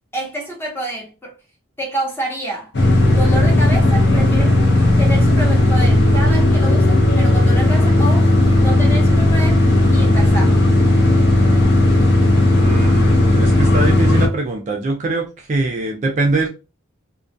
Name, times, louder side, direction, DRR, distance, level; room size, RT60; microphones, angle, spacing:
voice 1, 0.1-1.3 1.8-2.7 3.1-4.6 5.0-8.3 8.6-9.6 9.9-10.6, right 1 dB, 10° left, 0.7 m, -28 dB
sound 1, 2.7-14.3, left 1 dB, 50° left, 0.6 m, -14 dB
voice 2, 12.6-16.5, right 2 dB, 35° right, 0.4 m, -22 dB
2.2 x 2.2 x 2.5 m
head